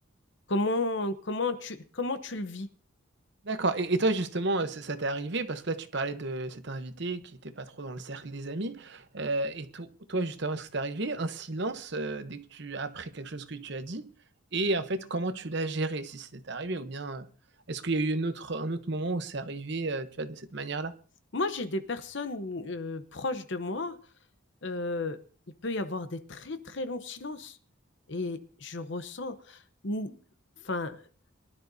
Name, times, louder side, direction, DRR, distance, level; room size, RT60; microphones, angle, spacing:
voice 1, 0.5-2.7 21.3-24.0 24.6-25.2 25.6-27.6 28.1-30.1 30.6-31.0, left 2 dB, 55° left, 0.9 m, -33 dB
voice 2, 3.4-14.1 14.5-17.3 17.7-20.9, right 2 dB, 55° right, 0.9 m, -32 dB
23.0 x 12.0 x 2.7 m
head